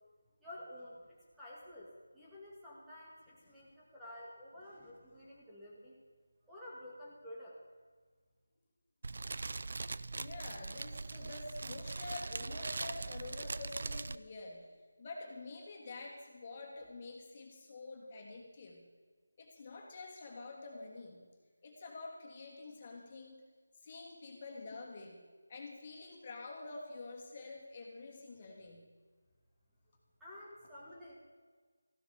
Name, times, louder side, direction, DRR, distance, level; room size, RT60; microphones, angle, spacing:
voice 1, 0.4-1.0 1.3-6.0 6.5-7.6 30.2-31.2, left 1 dB, 5° right, -8 dB, 2.4 m, -51 dB
Fire, 9.0-14.1, right 3 dB, 55° right, 0.5 m, -41 dB
voice 2, 10.1-14.7 15.0-18.8 19.4-21.2 21.6-23.4 23.8-25.2 25.5-28.8, left 3 dB, 30° left, -1 dB, 2.9 m, -47 dB
15.0 x 12.5 x 5.3 m, 1.5 s
figure-of-eight pair, 165°, 0 cm